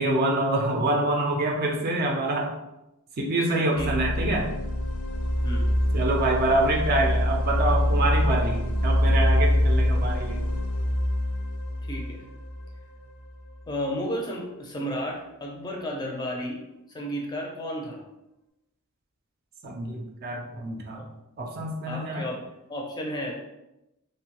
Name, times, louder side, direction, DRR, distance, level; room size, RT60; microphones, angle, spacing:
voice 1, 0.0-2.5 3.2-4.5 5.9-10.4 19.6-21.0 21.4-22.2, right 2 dB, 45° right, 1 dB, 0.4 m, -26 dB
sound 1, 3.7-13.5, left 1 dB, 80° left, 0.5 m, -25 dB
voice 2, 3.8-4.1 5.4-5.7 11.8-12.2 13.7-16.6 16.9-18.0 20.9-21.0 21.9-22.4 22.7-23.4, equal, 20° left, 0 dB, 0.5 m, -33 dB
3.0 x 2.2 x 2.9 m, 0.93 s
head